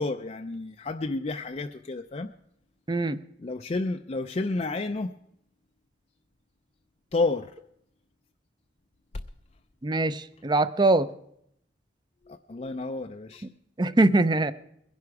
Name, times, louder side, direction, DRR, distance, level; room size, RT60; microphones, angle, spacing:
voice 1, 0.0-2.3 3.4-5.2 7.1-7.6 12.3-13.5, left 3 dB, 35° left, 0.4 m, -30 dB
voice 2, 2.9-3.2 9.8-11.1 13.8-14.5, right 2 dB, 25° right, 0.5 m, -22 dB
21.5 x 11.0 x 4.7 m
head